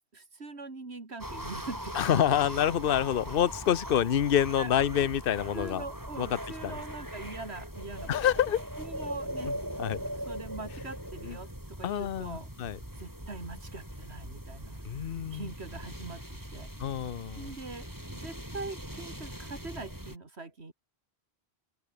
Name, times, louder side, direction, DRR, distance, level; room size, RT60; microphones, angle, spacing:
voice 1, 0.1-2.5 4.6-4.7 5.5-8.2 8.8-9.5 10.3-12.5 13.0-16.7 17.4-20.7, right 3 dB, 85° right, 3.2 m, -43 dB
sound 1, 1.2-20.2, equal, 15° right, 7.5 m, -41 dB
voice 2, 1.9-5.8 6.2-6.7 8.1-8.6 9.4-9.5 9.8-10.0 11.2-11.4 11.8-12.8 14.8-15.5 16.8-17.5, left 9 dB, 60° left, 1.0 m, -27 dB
open air
omnidirectional pair, 1.1 m